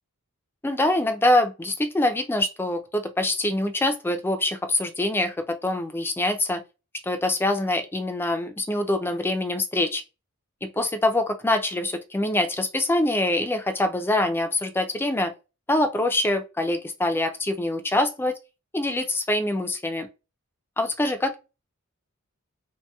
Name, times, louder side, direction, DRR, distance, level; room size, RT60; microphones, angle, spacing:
voice 1, 0.6-6.6 7.0-10.0 10.6-15.3 15.7-18.3 18.7-20.1 20.8-21.4, left 1 dB, 10° left, 0.3 m, -24 dB
2.9 x 2.7 x 2.2 m
head